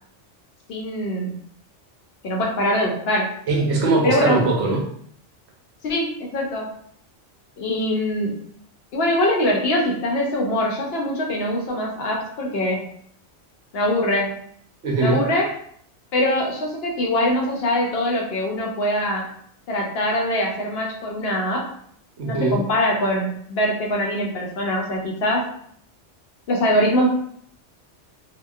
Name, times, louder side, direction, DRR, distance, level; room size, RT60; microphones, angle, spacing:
voice 1, 0.7-1.3 2.2-3.3 4.0-4.4 5.8-6.7 7.6-8.4 8.9-12.8 13.7-14.3 15.0-15.5 16.1-19.3 19.7-21.6 22.2-25.5 26.5-27.1, left 1 dB, 65° left, -1 dB, 0.7 m, -23 dB
voice 2, 3.5-4.9 14.8-15.2 22.2-22.6, right 3 dB, 70° right, -2 dB, 0.9 m, -21 dB
2.7 x 2.1 x 2.3 m, 0.65 s
omnidirectional pair, 1.2 m